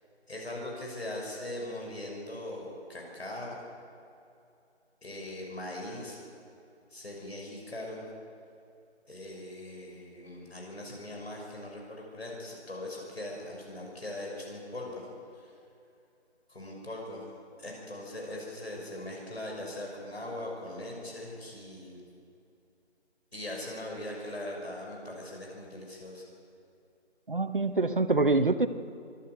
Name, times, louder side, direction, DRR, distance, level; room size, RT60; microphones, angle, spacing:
voice 1, 0.3-3.6 5.0-6.2 6.9-8.0 9.1-15.1 15.3-15.5 16.5-17.3 17.6-22.0 23.3-26.2, left 1 dB, 60° left, -1 dB, 6.2 m, -40 dB
voice 2, 27.3-28.7, right 3 dB, 50° right, 11 dB, 1.0 m, -25 dB
25.0 x 13.0 x 8.1 m, 2.6 s
figure-of-eight pair, 175°, 35 cm